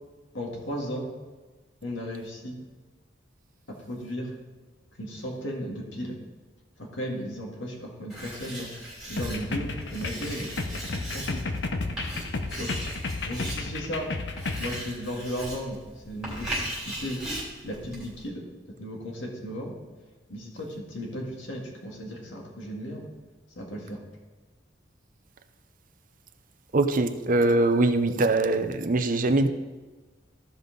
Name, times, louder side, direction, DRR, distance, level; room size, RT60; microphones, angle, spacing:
voice 1, 0.3-1.1 1.8-2.6 3.9-4.3 4.9-6.2 6.8-8.7 9.1-11.4 12.6-12.7 13.2-14.1 14.6-15.8 16.0-17.2 17.6-18.4 18.8-19.7 20.3-23.1 23.6-24.0, equal, 90° left, -1 dB, 1.9 m, -35 dB
Writing, 8.1-18.3, right 1 dB, 5° right, 2.9 m, -38 dB
sound 1, 9.2-14.8, left 3 dB, 65° left, 0.8 m, -32 dB
voice 2, 26.7-29.5, right 2 dB, 45° right, 8 dB, 0.6 m, -22 dB
14.5 x 5.4 x 3.9 m, 1.2 s
head